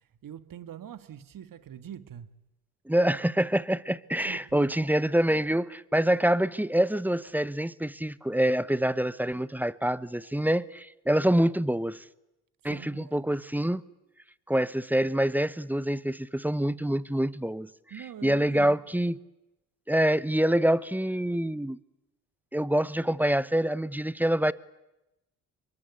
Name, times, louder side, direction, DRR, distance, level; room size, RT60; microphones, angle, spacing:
voice 1, 0.2-2.4 4.2-4.7 12.6-13.2 17.9-18.7, right 10 dB, 55° right, 1.6 m, -43 dB
voice 2, 2.9-12.0 12.6-13.8 14.5-17.7 18.2-19.2 19.9-21.8 22.5-24.5, right 1 dB, 5° right, 0.8 m, -26 dB
24.5 x 22.5 x 8.3 m
hypercardioid pair, 55°, 40 cm